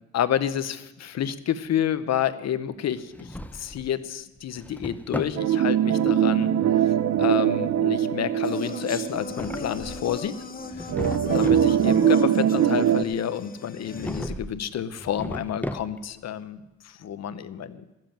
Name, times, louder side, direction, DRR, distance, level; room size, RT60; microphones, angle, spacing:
voice 1, 0.1-6.5 6.8-6.9 7.2-10.3 11.3-17.8, left 9 dB, 60° left, 13 dB, 0.9 m, -29 dB
Drawer open or close, 3.0-3.9 4.4-5.4 9.1-10.2 10.6-11.7 13.9-14.6 14.9-16.2, left 1 dB, 5° left, 0.7 m, -36 dB
sound 1, 5.4-9.7 10.1-10.2 10.9-13.0, right 10 dB, 65° right, 0.7 m, -22 dB
sound 2, 8.4-14.3, left 5 dB, 30° left, 1.1 m, -37 dB
14.5 x 7.6 x 9.0 m, 0.97 s
cardioid pair, 90°, 30 cm